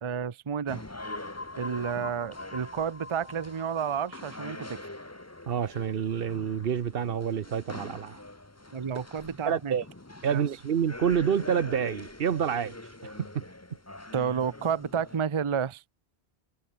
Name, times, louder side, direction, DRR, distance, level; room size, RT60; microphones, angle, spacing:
voice 1, 0.0-0.8 1.6-4.9 8.7-9.8 10.3-10.4 14.1-15.8, right 7 dB, 35° right, 0.6 m, -31 dB
sound 1, 0.7-15.2, left 2 dB, 15° left, 1.3 m, -44 dB
sound 2, 1.0-6.7, left 2 dB, 50° left, 3.6 m, -45 dB
voice 2, 5.5-8.2 9.4-9.9 10.2-12.8 13.0-13.4, right 8 dB, 60° right, 1.0 m, -28 dB
omnidirectional pair, 1.1 m